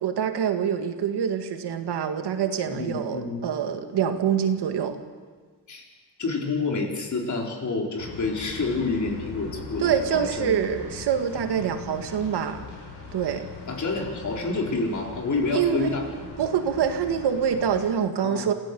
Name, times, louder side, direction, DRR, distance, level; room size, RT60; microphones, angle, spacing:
voice 1, 0.0-5.0 9.8-12.6 13.1-13.5 15.5-15.9 16.4-18.5, right 8 dB, 75° right, 7 dB, 2.0 m, -25 dB
voice 2, 2.7-3.4 5.7-5.8 6.2-10.6 11.5-11.6 13.7-16.3 18.2-18.5, left 3 dB, 45° left, 1 dB, 4.5 m, -28 dB
sound 1, 8.0-17.8, left 4 dB, 80° left, 8.0 m, -41 dB
27.0 x 16.5 x 7.0 m, 1.5 s
cardioid pair, 105°, 40 cm